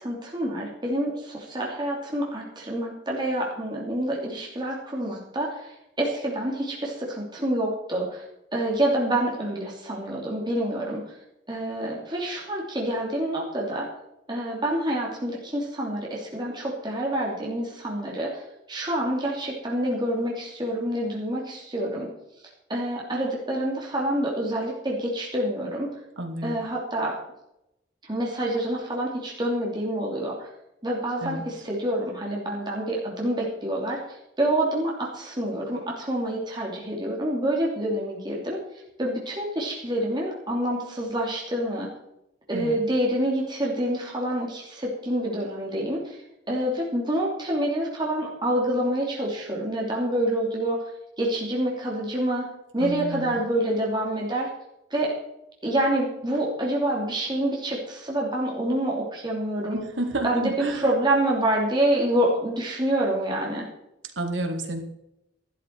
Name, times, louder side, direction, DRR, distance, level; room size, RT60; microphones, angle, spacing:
voice 1, 0.0-8.2 8.5-11.0 11.5-13.9 14.3-18.4 18.7-22.1 22.7-25.9 26.4-27.1 28.1-30.5 30.8-34.0 34.4-38.6 39.0-41.9 42.5-46.2 46.5-50.8 51.2-52.5 52.7-54.5 54.9-55.1 55.6-59.8 60.2-63.6, right 1 dB, 25° right, -3 dB, 2.9 m, -27 dB
voice 2, 26.2-26.6 31.2-31.4 42.5-42.8 52.8-53.4 59.7-60.9 64.2-64.8, right 1 dB, 90° right, 5 dB, 2.1 m, -30 dB
12.5 x 12.5 x 4.7 m, 0.84 s
head